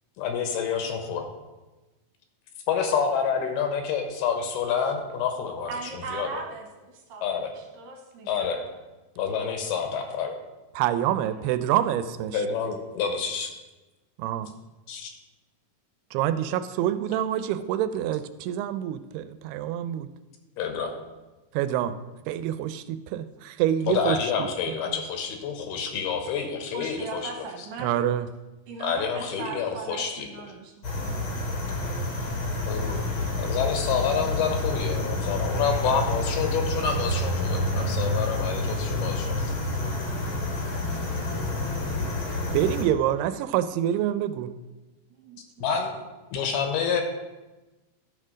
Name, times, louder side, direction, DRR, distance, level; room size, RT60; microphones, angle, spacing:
voice 1, 0.2-1.2 2.7-5.7 6.1-6.4 7.2-7.5 8.3-8.6 9.2-10.3 12.3-13.5 14.9-15.1 20.6-20.9 23.9-27.2 28.8-30.3 32.7-39.5 45.6-46.0 46.3-47.0, left 6 dB, 80° left, 5 dB, 3.0 m, -28 dB
voice 2, 5.7-8.8 11.2-11.5 26.7-28.1 28.7-31.9 37.5-37.6 45.1-45.4, right 4 dB, 70° right, 2 dB, 2.5 m, -40 dB
voice 3, 10.8-12.4 14.2-14.5 16.1-20.1 21.5-22.0 22.3-24.5 27.8-28.3 42.5-44.5, right 11 dB, 85° right, 12 dB, 2.5 m, -26 dB
sound 1, 30.8-42.8, left 1 dB, 55° left, 1.5 m, -28 dB
13.0 x 4.4 x 6.1 m, 1.1 s
omnidirectional pair, 4.6 m